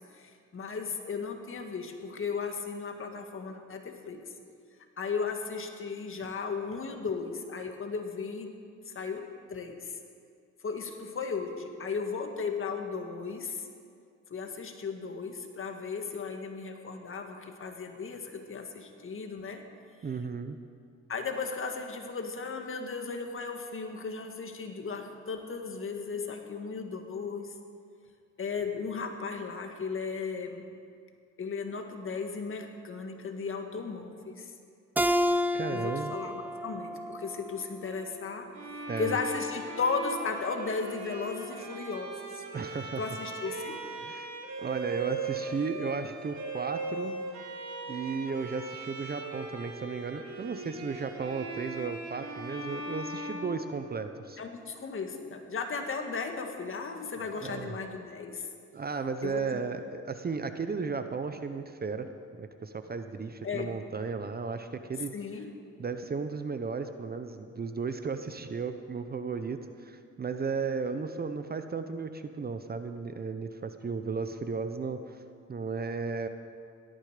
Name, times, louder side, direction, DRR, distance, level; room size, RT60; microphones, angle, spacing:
voice 1, 0.1-4.3 5.0-8.6 8.9-10.0 10.6-13.7 14.3-19.7 21.1-27.6 28.4-30.6 31.4-34.5 35.7-38.5 39.0-42.4 43.0-43.8 54.4-58.5 59.2-59.6 63.4-63.8 65.1-65.5, left 5 dB, 45° left, 4 dB, 1.9 m, -36 dB
voice 2, 20.0-20.6 35.5-36.1 38.9-39.2 42.5-43.0 44.0-44.3 44.6-47.1 47.9-54.4 57.2-57.8 58.7-65.1 65.8-75.2 75.5-76.3, right 4 dB, 30° right, 9 dB, 0.9 m, -35 dB
Keyboard (musical), 35.0-38.2, equal, 5° right, 0.5 m, -30 dB
Bowed string instrument, 38.5-54.3, right 3 dB, 70° right, 2.2 m, -39 dB
17.5 x 13.0 x 5.1 m, 2.3 s
cardioid pair, 90°, 30 cm